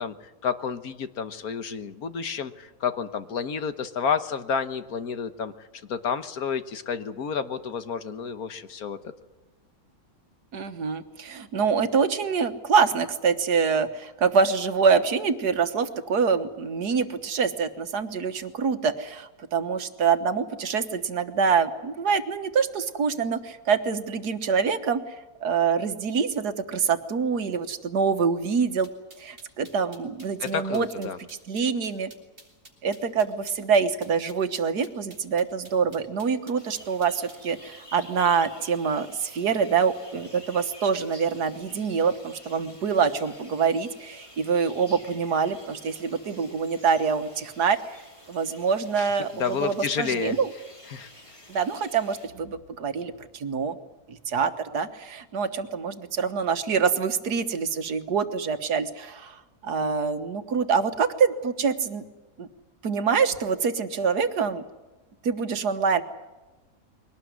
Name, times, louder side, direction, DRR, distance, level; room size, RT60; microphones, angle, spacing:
voice 1, 0.0-9.0 30.4-31.2 49.0-50.4 50.9-51.1, left 6 dB, 70° left, 11 dB, 1.7 m, -30 dB
voice 2, 10.5-28.9 29.2-31.1 31.5-32.1 32.8-48.0 48.3-50.5 51.5-53.8 54.1-62.0 62.4-62.5 62.8-64.6 65.2-66.0, right 6 dB, 80° right, 10 dB, 1.9 m, -25 dB
sound 1, 28.8-37.5, right 2 dB, 35° right, 4.5 m, -51 dB
sound 2, 36.6-52.3, left 1 dB, 20° left, 3.0 m, -50 dB
22.5 x 18.5 x 9.6 m, 1.1 s
omnidirectional pair, 1.7 m